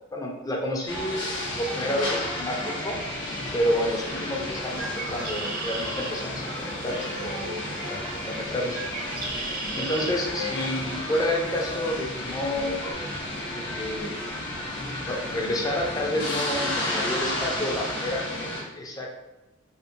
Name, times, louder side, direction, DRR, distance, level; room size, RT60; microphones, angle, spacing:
voice 1, 0.1-1.3 1.6-3.0 3.5-7.0 7.2-7.4 7.9-8.8 9.8-12.8 13.5-14.1 14.9-18.2 18.7-19.1, left 1 dB, 20° left, 0 dB, 0.4 m, -29 dB
sound 1, 0.9-18.6, left 1 dB, 60° left, 0.7 m, -32 dB
Bird, 4.6-10.1, right 3 dB, 45° right, 0.5 m, -37 dB
sound 2, 6.9-7.9 10.3-10.7 11.1-11.6 12.8-12.9, left 4 dB, 80° right, 0.7 m, -39 dB
2.7 x 2.0 x 2.5 m, 0.96 s
head